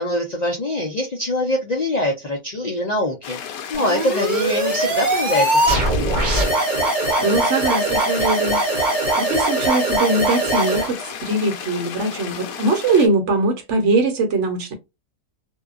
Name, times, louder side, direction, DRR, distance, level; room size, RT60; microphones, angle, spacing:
voice 1, 0.0-3.4 3.7-6.0, left 1 dB, 55° left, 0.4 m, -23 dB
sound 1, 3.2-13.1, left 8 dB, 75° left, 1.0 m, -33 dB
sound 2, 3.7-10.9, right 1 dB, 35° right, 0.9 m, -21 dB
voice 2, 7.2-8.6 9.2-14.7, right 2 dB, 60° right, 1.1 m, -21 dB
2.7 x 2.3 x 2.3 m
omnidirectional pair, 1.6 m